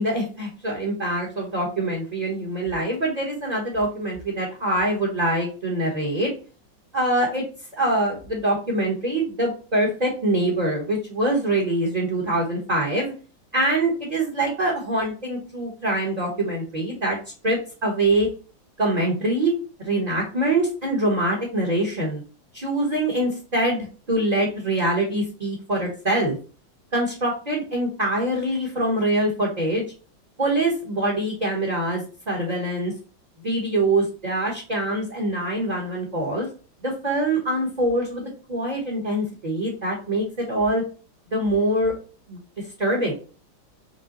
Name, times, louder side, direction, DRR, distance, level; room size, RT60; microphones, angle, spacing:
voice 1, 0.0-6.3 6.9-7.4 7.8-13.1 13.5-17.2 17.4-18.3 18.8-19.5 19.8-22.2 22.5-26.4 26.9-29.8 30.4-32.9 33.4-36.5 36.8-38.2 38.5-40.8 41.3-41.9 42.3-42.4 42.8-43.1, right 1 dB, 30° right, -2 dB, 0.9 m, -24 dB
5.4 x 2.2 x 3.8 m, 0.37 s
omnidirectional pair, 2.1 m